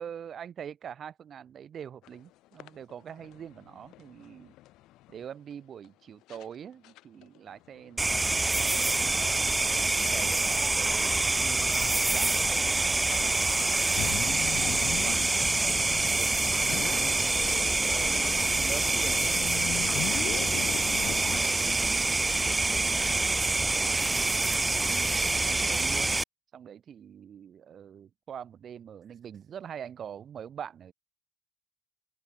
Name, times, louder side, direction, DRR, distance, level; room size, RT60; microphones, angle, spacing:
voice 1, 0.0-4.5 5.1-13.3 13.6-15.4 16.0-17.1 17.9-20.3 20.8-22.7 23.6-26.1 26.5-30.9, right 8 dB, 50° right, 1.8 m, -44 dB
sound 1, 2.0-2.2 2.6-5.2 5.8-5.9 6.3-6.5 6.8-10.5 10.8-10.9 11.1-11.2 11.8-12.0 12.3-21.4, left 17 dB, 80° left, 2.0 m, -40 dB
sound 2, 8.0-26.2, right 2 dB, 15° right, 0.6 m, -26 dB
open air
cardioid pair, 115°, 0 cm